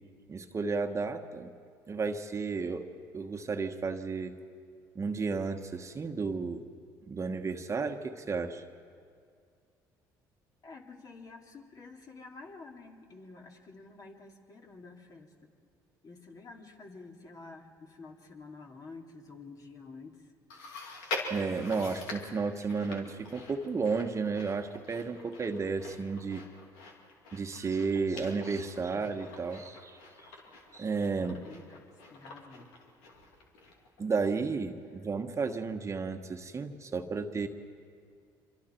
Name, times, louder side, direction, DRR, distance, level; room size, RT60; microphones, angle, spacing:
voice 1, 0.3-1.5 1.9-2.9 3.1-4.3 4.9-6.6 7.1-8.6 21.3-26.4 27.3-30.0 30.7-31.4 34.0-37.5, right 4 dB, 35° right, 6 dB, 1.3 m, -33 dB
voice 2, 10.6-15.5 16.0-20.3 28.9-29.2 31.2-32.7, left 3 dB, 40° left, 1 dB, 2.7 m, -50 dB
Chewing mastication, 20.5-34.0 34.4-34.5 35.3-35.4, left 2 dB, 85° left, 2.8 m, -44 dB
26.5 x 24.0 x 4.5 m, 2.2 s
supercardioid pair, 75°, 9 cm